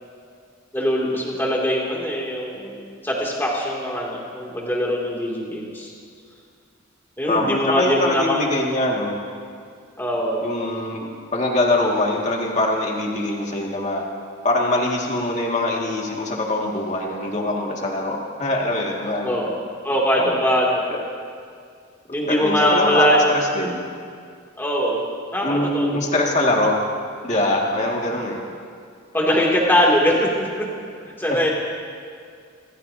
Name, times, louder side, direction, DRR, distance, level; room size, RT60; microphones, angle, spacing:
voice 1, 0.7-5.9 7.2-8.4 10.0-10.4 19.2-19.6 19.8-20.8 22.1-23.2 24.6-25.0 25.3-26.0 29.1-30.7 31.0-31.5, equal, 10° left, -3 dB, 2.7 m, -21 dB
voice 2, 7.3-9.2 10.4-14.0 14.4-19.4 20.2-20.4 20.9-21.0 22.3-23.1 23.6-23.8 25.4-26.7 27.2-28.4, left 1 dB, 35° left, -2 dB, 2.2 m, -23 dB
27.5 x 15.5 x 2.9 m, 2.2 s
head